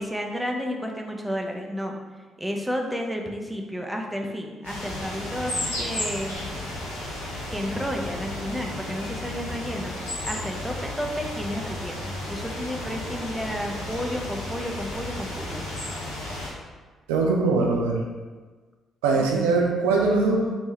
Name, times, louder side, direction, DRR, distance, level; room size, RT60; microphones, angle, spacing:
voice 1, 0.0-2.0 2.4-6.4 7.5-9.9 10.2-15.6 19.1-19.6, equal, 5° right, 2 dB, 0.6 m, -32 dB
sound 1, 4.6-16.5, left 1 dB, 80° left, 0.7 m, -33 dB
voice 2, 17.1-18.0 19.0-20.5, right 3 dB, 75° right, 0 dB, 0.4 m, -21 dB
3.5 x 3.1 x 3.1 m, 1.4 s
figure-of-eight pair, 40°, 0 cm